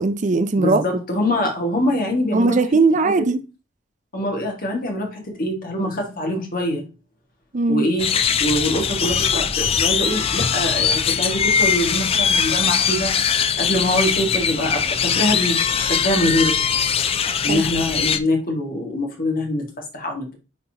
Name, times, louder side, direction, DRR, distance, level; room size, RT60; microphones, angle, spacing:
voice 1, 0.0-0.8 2.3-3.4 7.5-7.9 17.5-17.6, right 3 dB, 40° right, 0.5 m, -19 dB
voice 2, 0.6-2.6 3.0-3.3 4.1-6.8 7.7-8.1 8.4-13.2 13.6-16.5 17.4-20.3, left 1 dB, 45° left, 1.9 m, -24 dB
sound 1, 8.0-18.2, left 7 dB, 30° left, 0.4 m, -21 dB
9.3 x 4.1 x 2.9 m
head